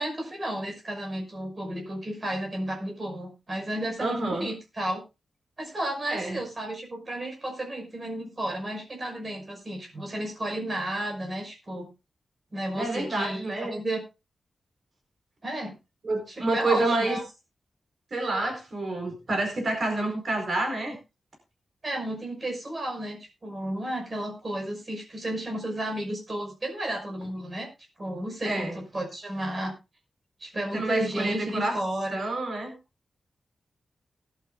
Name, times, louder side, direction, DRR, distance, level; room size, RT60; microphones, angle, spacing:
voice 1, 0.0-5.0 5.6-11.9 12.5-14.0 15.4-15.7 16.3-17.2 21.8-27.7 28.0-29.7 30.4-32.2, right 1 dB, 30° right, 1 dB, 5.9 m, -32 dB
voice 2, 4.0-4.5 6.1-6.4 12.8-13.8 16.0-17.2 18.1-21.0 28.4-28.8 30.7-31.8 32.1-32.7, right 2 dB, 45° right, 3 dB, 4.6 m, -28 dB
20.0 x 11.5 x 2.5 m, 0.28 s
wide cardioid pair, 170°, 0 cm